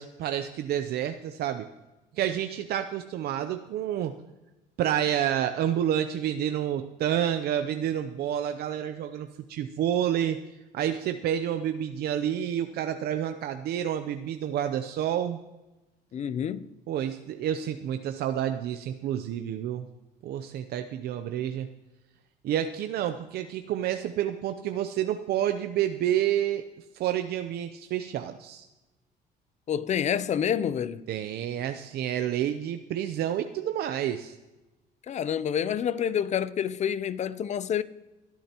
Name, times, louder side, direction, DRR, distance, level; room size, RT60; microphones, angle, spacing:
voice 1, 0.0-1.7 2.1-4.2 4.8-10.4 10.7-15.4 16.9-19.9 20.2-21.7 22.4-26.6 26.9-28.7 31.1-34.3, right 10 dB, 70° right, 0.7 m, -29 dB
voice 2, 16.1-16.6 29.7-31.1 35.1-37.8, left 8 dB, 45° left, 0.6 m, -28 dB
23.0 x 8.6 x 2.9 m
cardioid pair, 110°, 17 cm